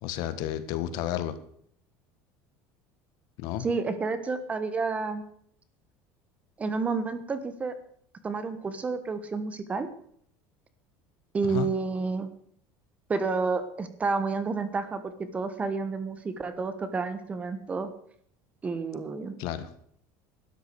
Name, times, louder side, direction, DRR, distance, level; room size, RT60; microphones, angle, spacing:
voice 1, 0.0-1.3 3.4-3.7 11.4-11.7 19.4-19.7, left 11 dB, 60° left, 12 dB, 1.5 m, -31 dB
voice 2, 3.6-5.2 6.6-7.7 8.2-9.9 11.3-12.3 13.1-15.0 15.3-17.9 18.6-19.3, right 4 dB, 20° right, 11 dB, 1.3 m, -30 dB
12.5 x 10.0 x 7.0 m, 0.65 s
cardioid pair, 160°, 8 cm